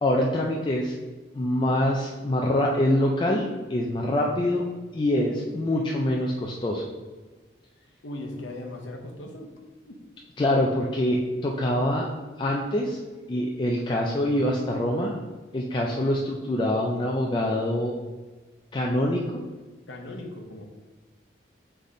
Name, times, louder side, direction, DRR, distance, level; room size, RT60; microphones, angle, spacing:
voice 1, 0.0-0.9 1.3-4.7 4.9-6.8 10.4-12.1 12.4-13.0 13.3-15.2 15.5-17.9 18.7-19.4, left 1 dB, 25° left, -1 dB, 0.3 m, -25 dB
voice 2, 8.0-9.5 9.8-10.0 19.9-20.6, left 1 dB, 80° left, 2 dB, 0.7 m, -38 dB
4.1 x 3.4 x 3.7 m, 1.3 s
head